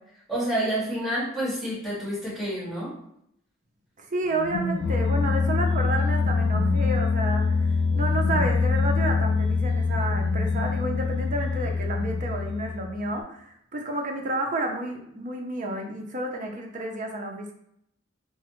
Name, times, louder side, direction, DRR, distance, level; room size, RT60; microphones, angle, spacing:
voice 1, 0.3-2.9, right 1 dB, ahead, -9 dB, 1.4 m, -28 dB
voice 2, 4.0-7.7 7.9-13.4 13.7-17.5, right 1 dB, 40° right, 2 dB, 0.5 m, -30 dB
sound 1, 4.3-13.1, left 4 dB, 85° left, 0.4 m, -24 dB
3.3 x 2.1 x 3.0 m, 0.72 s
head